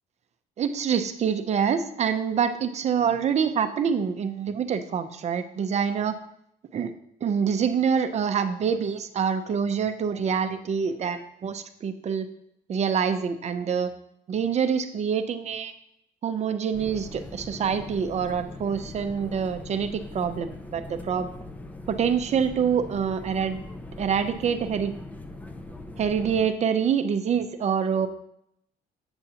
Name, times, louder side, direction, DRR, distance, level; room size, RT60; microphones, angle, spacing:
voice 1, 0.6-6.2 6.7-6.9 7.2-12.3 12.7-13.9 14.3-15.7 16.2-21.3 21.9-23.6 24.0-24.9 26.0-28.1, right 7 dB, 40° right, 9 dB, 0.7 m, -26 dB
sound 1, 16.7-26.5, left 2 dB, 10° left, 0.5 m, -41 dB
7.9 x 7.0 x 2.9 m, 0.75 s
cardioid pair, 110°, 17 cm